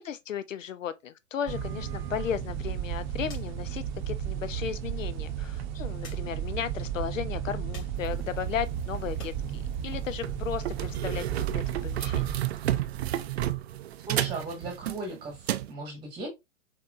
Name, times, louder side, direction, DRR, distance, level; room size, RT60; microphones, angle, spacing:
voice 1, 0.0-12.3, left 9 dB, 70° left, 0.7 m, -35 dB
sound 1, 1.5-12.4, right 9 dB, 35° right, 0.8 m, -34 dB
sound 2, 2.2-9.4 9.8-10.9, left 4 dB, 35° left, 3.0 m, -56 dB
sound 3, 9.1-9.3 9.8-9.9 10.2-15.7, right 13 dB, 55° right, 0.5 m, -31 dB
voice 2, 14.0-16.3, right 2 dB, 10° right, 1.3 m, -37 dB
5.8 x 2.9 x 2.5 m
hypercardioid pair, 125°, 39 cm